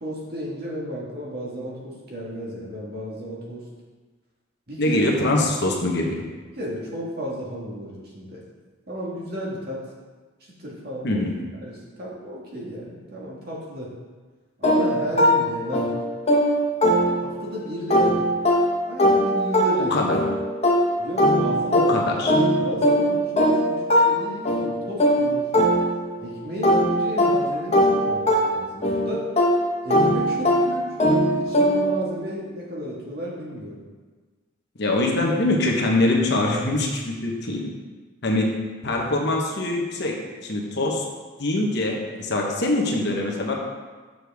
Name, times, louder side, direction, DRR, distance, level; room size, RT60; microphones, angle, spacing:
voice 1, 0.0-3.6 4.7-5.0 5.7-5.8 6.6-8.4 8.9-9.8 10.6-11.2 11.6-13.9 14.6-15.9 17.2-18.3 18.9-20.0 21.0-25.7 26.2-29.3 29.8-31.0 31.2-33.8, equal, 50° right, -4 dB, 1.6 m, -33 dB
voice 2, 4.8-6.1 11.0-11.3 19.7-20.2 21.7-22.3 34.8-37.6 38.2-38.5 38.8-40.1 40.4-41.0 41.4-43.5, left 2 dB, 55° left, 0 dB, 1.0 m, -23 dB
sound 1, 14.6-17.5 17.9-26.2 26.6-32.1, equal, 30° left, 0.9 m, -21 dB
6.7 x 6.3 x 3.5 m, 1.4 s
head